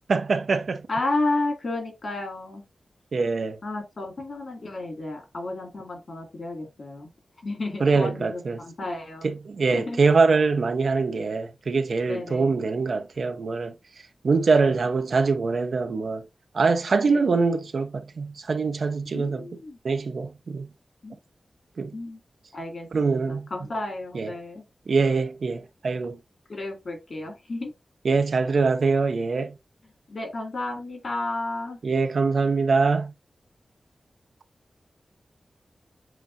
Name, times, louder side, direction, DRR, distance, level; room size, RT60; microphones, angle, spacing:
voice 1, 0.1-0.8 3.1-3.6 7.8-8.6 9.2-13.7 14.2-16.2 16.5-19.6 19.8-20.7 21.8-21.9 22.9-23.5 24.1-24.3 24.9-26.2 28.0-29.6 31.8-33.1, right 4 dB, 75° right, 0.6 m, -23 dB
voice 2, 0.9-2.6 3.6-7.1 7.4-9.3 9.7-10.0 12.1-12.6 14.6-14.8 17.0-17.2 19.1-19.8 21.0-21.2 21.9-22.2 22.5-24.6 26.5-27.7 30.1-31.8, left 2 dB, 65° left, 2.5 m, -32 dB
7.5 x 2.6 x 2.7 m
cardioid pair, 65°, 0 cm